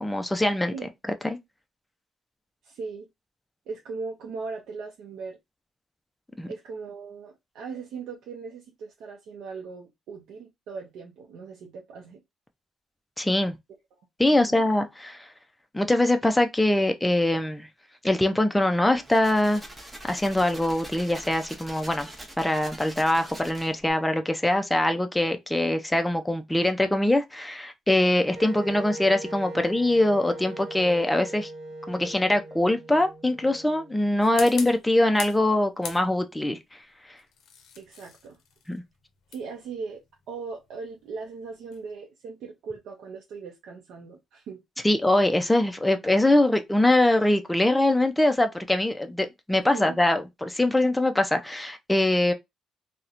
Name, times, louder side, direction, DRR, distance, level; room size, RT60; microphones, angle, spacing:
voice 1, 0.0-0.7 1.2-1.4 6.4-6.5 13.2-13.6 14.2-15.3 15.7-17.7 18.0-19.6 20.1-22.1 22.4-31.5 31.9-36.6 38.7-38.8 44.8-52.3, left 1 dB, 10° left, 0.4 m, -23 dB
voice 2, 2.6-3.1 3.7-5.4 6.5-12.2 14.3-14.6 29.5-29.7 34.4-34.5 37.8-38.4 39.3-40.0 40.3-44.9 49.7-50.0, right 4 dB, 80° right, 0.5 m, -39 dB
sound 1, 18.9-23.9, right 1 dB, 15° right, 0.8 m, -44 dB
Wind instrument woodwind instrument, 28.4-34.2, right 1 dB, 50° right, 1.1 m, -40 dB
sound 2, 34.2-35.5 35.8-36.5 37.2-41.9, left 6 dB, 85° left, 0.5 m, -42 dB
2.8 x 2.1 x 2.4 m
cardioid pair, 90°, 0 cm